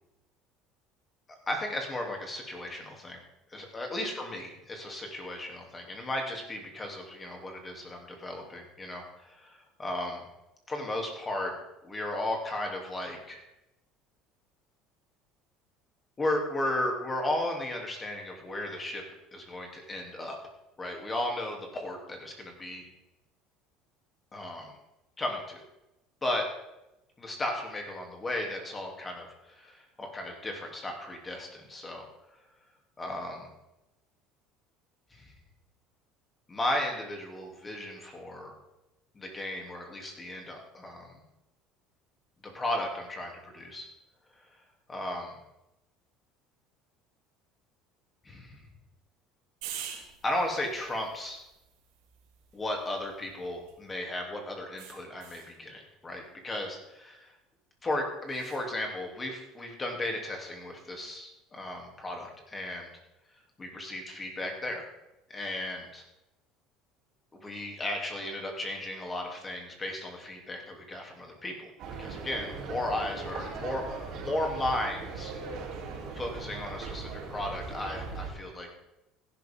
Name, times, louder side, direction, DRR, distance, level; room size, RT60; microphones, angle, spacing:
voice 1, 1.5-3.2 3.5-10.2 10.7-11.6 11.8-13.4 16.2-19.0 19.3-20.4 20.8-22.9 24.3-24.8 25.2-25.6 26.2-26.4 27.2-32.0 33.0-33.5 35.1-35.3 36.5-38.5 39.1-41.2 42.4-43.9 44.9-45.4 48.2-48.6 49.8-51.4 52.5-57.3 57.8-62.9 63.6-64.8 65.3-66.0 67.4-71.7 72.0-75.3 76.1-78.7, left 1 dB, 20° left, 2 dB, 3.1 m, -35 dB
sound 1, 49.6-54.0 54.8-55.5 58.3-58.6, right 9 dB, 85° right, 3.0 m, -46 dB
sound 2, 71.8-78.3, right 4 dB, 55° right, 4.0 m, -39 dB
16.0 x 11.5 x 3.8 m, 0.92 s
cardioid pair, 130°, 0 cm